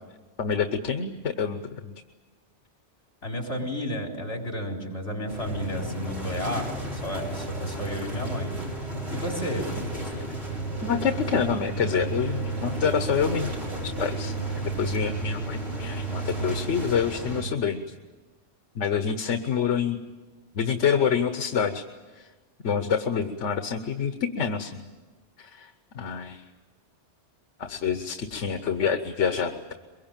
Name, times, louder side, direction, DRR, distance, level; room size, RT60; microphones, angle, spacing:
voice 1, 0.4-1.9 10.1-10.3 10.8-13.5 13.8-14.3 14.8-17.8 18.7-20.0 20.5-21.8 22.1-22.3 22.6-24.9 25.4-26.4 27.6-29.7, left 7 dB, 85° left, 7 dB, 1.3 m, -27 dB
voice 2, 3.2-8.6 9.1-9.7, equal, 65° left, 1 dB, 4.4 m, -32 dB
sound 1, 5.3-17.4, right 2 dB, 55° right, 5.0 m, -32 dB
23.5 x 22.5 x 9.0 m, 1.3 s
omnidirectional pair, 1.2 m